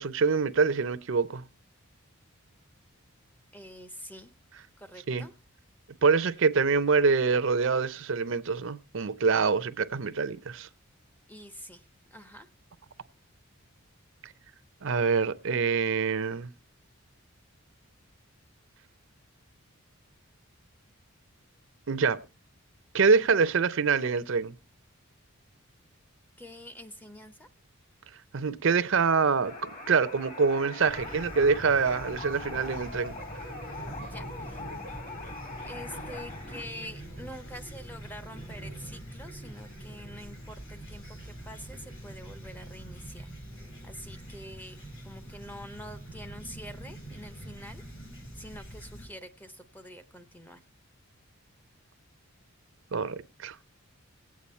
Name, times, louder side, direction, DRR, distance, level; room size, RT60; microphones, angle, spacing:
voice 1, 0.0-1.4 5.1-5.3 6.0-10.7 14.8-16.5 21.9-22.2 22.9-24.5 28.3-33.1 52.9-53.6, right 5 dB, 60° right, 0.5 m, -25 dB
voice 2, 3.5-4.3 4.8-5.3 11.3-11.8 12.1-12.5 26.4-27.5 34.0-34.6 35.6-43.3 43.8-44.8 45.0-47.8 48.4-50.6, equal, 10° left, 0.6 m, -46 dB
sound 1, 29.4-36.6, left 3 dB, 35° left, 1.5 m, -42 dB
Fowl / Chirp tweet, 30.8-49.1, right 1 dB, 65° left, 5.8 m, -44 dB
18.0 x 8.5 x 4.2 m
head